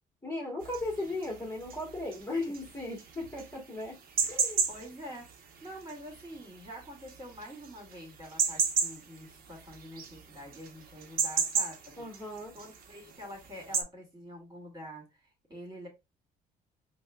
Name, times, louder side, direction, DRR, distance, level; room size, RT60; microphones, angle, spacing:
voice 1, 0.2-4.0 4.3-4.6 12.0-12.6, left 2 dB, 15° left, 1.2 m, -36 dB
sound 1, 0.6-13.8, right 6 dB, 60° right, 0.8 m, -34 dB
voice 2, 4.7-12.1 12.5-15.9, equal, 25° right, 2.1 m, -46 dB
5.4 x 2.2 x 2.2 m
cardioid pair, 110°, 17 cm